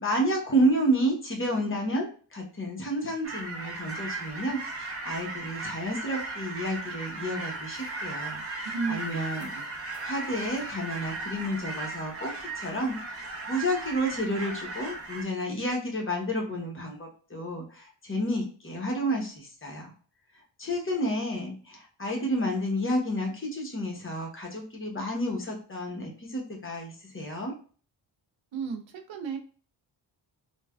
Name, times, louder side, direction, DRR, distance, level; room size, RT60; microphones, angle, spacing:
voice 1, 0.0-9.5 10.0-19.9 20.6-27.5, equal, 25° left, 0 dB, 0.8 m, -30 dB
sound 1, 3.2-15.2, right 3 dB, 30° right, 0.7 m, -37 dB
voice 2, 8.6-9.2 9.5-9.6 28.5-29.4, right 5 dB, 75° right, 5 dB, 0.6 m, -33 dB
3.2 x 2.2 x 2.2 m, 0.40 s
wide cardioid pair, 95°, 47 cm